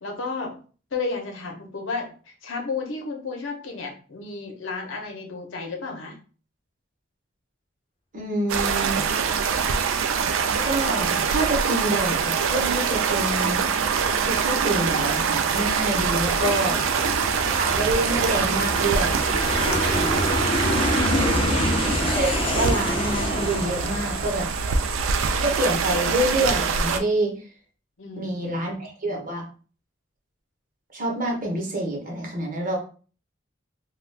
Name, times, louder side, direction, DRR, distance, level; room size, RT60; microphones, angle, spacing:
voice 1, 0.0-0.5 0.9-6.2 16.6-17.5 19.5-20.6 28.0-28.7, left 4 dB, 80° left, 2 dB, 0.8 m, -34 dB
voice 2, 8.1-9.0 10.6-13.6 14.2-16.8 17.6-19.2 19.9-20.3 22.1-24.5 25.4-27.3 28.2-29.5 30.9-32.8, right 1 dB, 45° right, 0 dB, 0.8 m, -27 dB
sound 1, 8.5-27.0, right 6 dB, 85° right, 0.4 m, -24 dB
Aircraft, 12.2-25.3, left 1 dB, 30° left, 0.5 m, -29 dB
2.4 x 2.3 x 3.3 m, 0.39 s
head